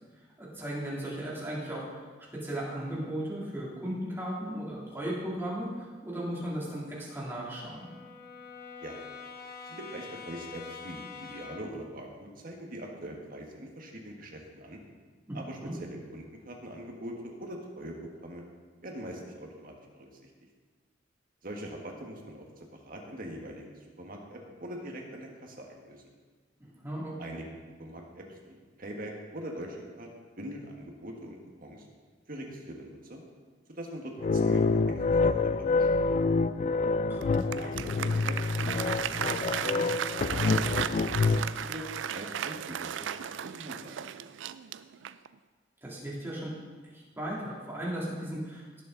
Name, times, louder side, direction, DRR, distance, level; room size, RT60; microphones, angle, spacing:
voice 1, 0.4-2.1 2.3-7.9 15.3-15.7 26.6-27.1 37.1-37.6 45.8-46.5 46.9-48.8, right 1 dB, 15° right, -6 dB, 3.2 m, -36 dB
Brass instrument, 6.3-11.8, left 5 dB, 55° left, 1.2 m, -46 dB
voice 2, 9.7-14.8 15.3-18.4 18.8-20.3 21.4-26.0 27.2-27.4 27.8-30.1 30.4-31.8 32.3-33.2 33.7-34.8 35.1-36.0 37.6-39.2 39.5-39.9 40.3-44.0, right 1 dB, 50° right, 1 dB, 1.7 m, -43 dB
sound 1, 34.2-41.5, left 3 dB, 40° left, 0.3 m, -27 dB
Applause, 37.2-45.3, right 9 dB, 80° right, 0.4 m, -35 dB
17.0 x 7.3 x 4.0 m, 1.5 s
head